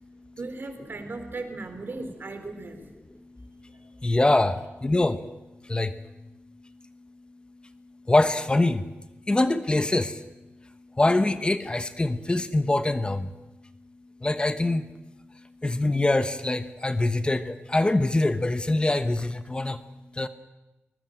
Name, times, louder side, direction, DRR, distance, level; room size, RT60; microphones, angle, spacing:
voice 1, 0.4-2.8 3.7-3.9, right 3 dB, 55° right, 7 dB, 3.8 m, -37 dB
voice 2, 4.0-5.2 5.7-5.9 8.1-8.8 9.3-10.1 11.0-13.2 14.2-14.8 15.6-19.8 20.2-20.3, left 2 dB, 25° left, 11 dB, 1.0 m, -23 dB
24.0 x 20.0 x 7.9 m, 1.0 s
wide cardioid pair, 100°, 4 cm